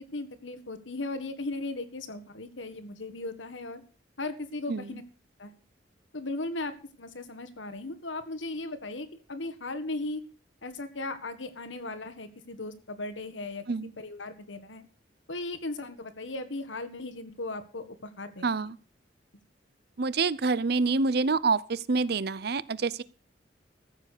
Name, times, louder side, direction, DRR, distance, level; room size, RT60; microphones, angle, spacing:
voice 1, 0.1-3.8 4.2-5.0 5.4-5.6 6.1-6.7 7.0-10.2 10.6-13.6 14.0-14.8 15.3-18.7, left 2 dB, 90° left, 1.7 m, -37 dB
voice 2, 4.7-5.0 13.7-13.9 18.4-18.8 20.0-23.0, right 4 dB, 60° right, 0.6 m, -27 dB
14.0 x 7.5 x 6.6 m
head